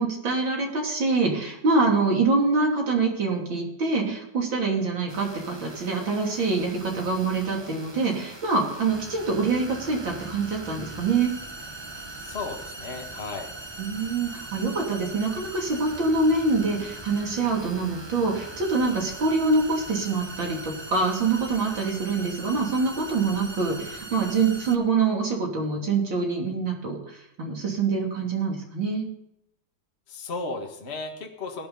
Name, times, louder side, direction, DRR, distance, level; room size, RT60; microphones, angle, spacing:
voice 1, 0.0-11.3 13.8-29.0, right 3 dB, 65° right, 0 dB, 3.7 m, -25 dB
sound 1, 5.1-24.8, right 2 dB, 20° right, 0.9 m, -40 dB
voice 2, 12.2-13.5 30.1-31.7, left 3 dB, 30° left, 2 dB, 1.9 m, -34 dB
17.0 x 11.5 x 4.1 m, 0.79 s
omnidirectional pair, 2.2 m